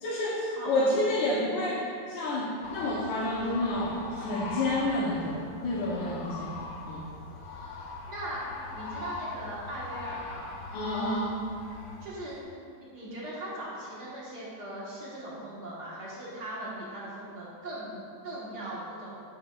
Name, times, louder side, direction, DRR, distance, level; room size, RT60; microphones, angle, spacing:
voice 1, 0.0-6.5 6.8-7.0 10.7-11.3, left 1 dB, 90° left, -6 dB, 1.6 m, -29 dB
voice 2, 0.6-0.9 6.2-6.5 7.7-10.6 12.0-12.3 12.7-19.2, right 1 dB, 65° right, -7 dB, 2.0 m, -39 dB
sound 1, 2.6-12.1, left 3 dB, 65° left, 1.2 m, -41 dB
8.7 x 8.6 x 2.3 m, 2.3 s
omnidirectional pair, 2.0 m